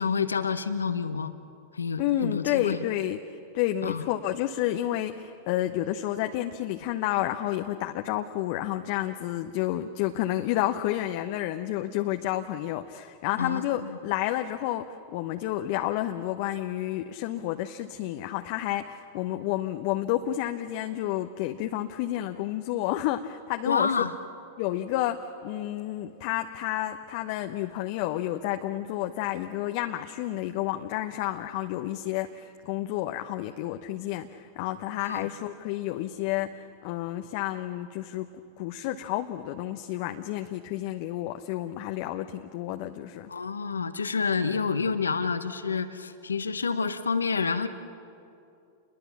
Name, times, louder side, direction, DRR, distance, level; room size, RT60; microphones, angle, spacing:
voice 1, 0.0-1.3 1.7-2.8 3.8-4.1 13.4-14.0 23.6-24.1 35.1-35.3 43.3-47.7, left 5 dB, 85° left, 10 dB, 1.1 m, -28 dB
voice 2, 2.0-3.2 3.5-23.9 24.6-43.3, left 13 dB, 50° left, 6 dB, 0.9 m, -30 dB
29.0 x 22.0 x 7.2 m, 2.6 s
figure-of-eight pair, 95°, 0 cm